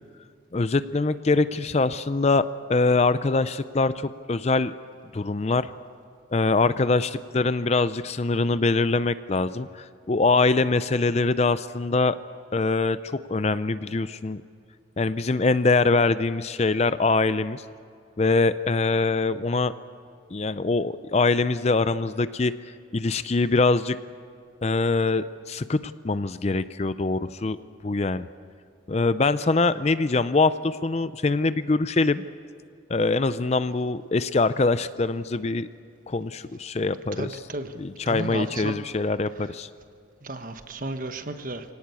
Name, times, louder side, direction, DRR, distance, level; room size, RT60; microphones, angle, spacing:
voice 1, 0.5-4.7 5.1-5.7 6.3-12.2 12.5-14.4 15.0-17.6 18.2-19.7 20.3-22.5 22.9-24.0 24.6-28.3 28.9-32.2 32.9-35.7 36.1-37.4 37.7-39.7, left 3 dB, 35° left, 14 dB, 0.5 m, -23 dB
voice 2, 37.2-37.7 38.1-38.8 40.2-41.6, right 2 dB, 45° right, 8 dB, 1.2 m, -33 dB
24.5 x 18.0 x 8.4 m, 2.3 s
head